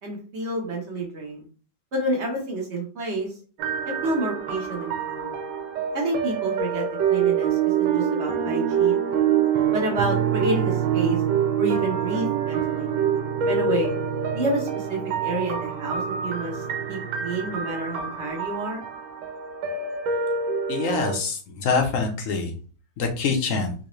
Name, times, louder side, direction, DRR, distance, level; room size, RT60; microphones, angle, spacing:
voice 1, 0.0-1.4 1.9-3.3 3.8-5.4 5.9-9.0 9.7-11.2 11.6-12.9 13.4-13.9 14.3-16.6 16.9-18.8, right 1 dB, 45° right, 0 dB, 0.9 m, -29 dB
sound 1, 3.6-21.2, right 8 dB, 80° right, 1.4 m, -26 dB
voice 2, 20.7-22.5 23.0-23.7, left 4 dB, 60° left, 3 dB, 0.9 m, -25 dB
3.9 x 2.8 x 3.0 m, 0.39 s
omnidirectional pair, 2.1 m